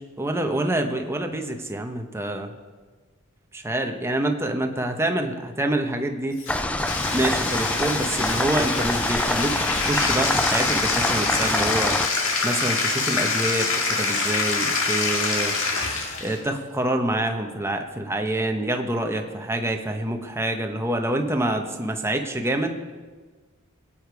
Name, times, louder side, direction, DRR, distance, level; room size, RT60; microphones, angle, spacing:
voice 1, 0.2-2.5 3.5-6.4 7.1-11.9 12.4-15.5 16.2-22.8, right 1 dB, 10° right, 4 dB, 1.0 m, -26 dB
Bathtub (filling or washing), 6.4-16.4, left 4 dB, 65° left, 1.9 m, -25 dB
sound 1, 6.5-12.1, left 1 dB, 5° left, 0.4 m, -26 dB
21.0 x 8.8 x 4.8 m, 1.4 s
head